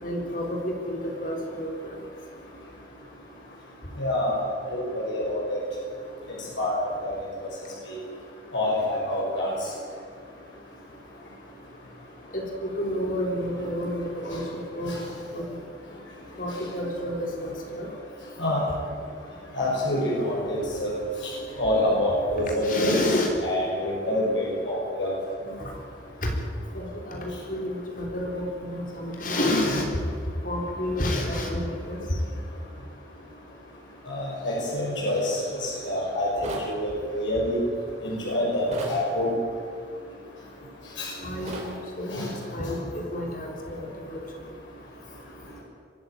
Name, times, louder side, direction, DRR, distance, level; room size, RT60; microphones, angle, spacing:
voice 1, 0.0-1.9 12.3-12.4 12.8-15.0 15.3-15.5 16.4-17.9 22.6-23.3 25.6-25.7 26.2-26.3 26.7-29.9 30.4-32.2 41.2-44.2, left 1 dB, 45° left, 1 dB, 3.7 m, -30 dB
voice 2, 4.0-4.4 4.7-5.6 6.6-6.7 7.0-7.2 7.4-7.5 7.9-8.0 8.5-9.5 14.3-14.4 14.9-15.0 18.4-18.6 19.6-20.9 21.6-23.0 23.4-25.1 34.1-36.3 36.7-37.6 38.0-39.3 41.0-41.1 41.4-41.5 42.1-42.3, left 1 dB, 85° left, -4 dB, 6.1 m, -26 dB
sound 1, 36.4-36.7 38.7-39.0 41.5-41.7, right 1 dB, 40° right, 4.5 m, -35 dB
23.5 x 14.5 x 9.1 m, 2.4 s
head